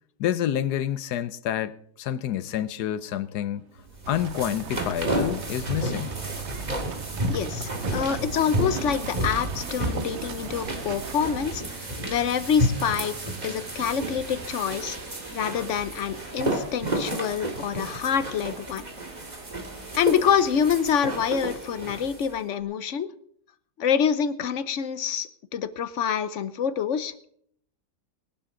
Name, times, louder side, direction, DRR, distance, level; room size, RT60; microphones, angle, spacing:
voice 1, 0.2-3.6 4.1-6.1, left 11 dB, 80° left, 1.3 m, -28 dB
sound 1, 2.4-21.5, right 5 dB, 80° right, 2.4 m, -45 dB
sound 2, 3.9-22.3, right 1 dB, 25° right, 2.2 m, -32 dB
sound 3, 4.0-11.5, right 8 dB, 55° right, 0.9 m, -39 dB
voice 2, 7.3-13.2 13.4-18.9 19.9-23.1 23.8-27.3, left 7 dB, 55° left, 1.0 m, -26 dB
20.0 x 11.5 x 3.8 m
omnidirectional pair, 1.7 m